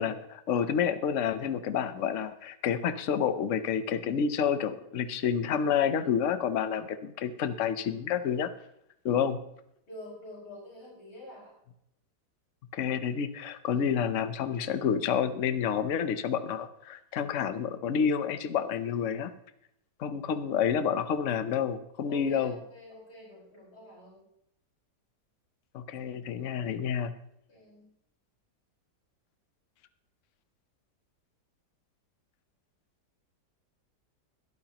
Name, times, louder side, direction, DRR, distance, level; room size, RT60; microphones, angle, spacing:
voice 1, 0.0-8.5 9.0-9.4 12.7-19.3 20.0-22.6 25.7-27.1, left 7 dB, 55° left, 11 dB, 1.0 m, -29 dB
voice 2, 9.9-11.6 22.1-24.2 27.5-27.9, left 1 dB, 70° left, -5 dB, 5.4 m, -47 dB
21.0 x 12.0 x 3.0 m, 0.76 s
omnidirectional pair, 1.8 m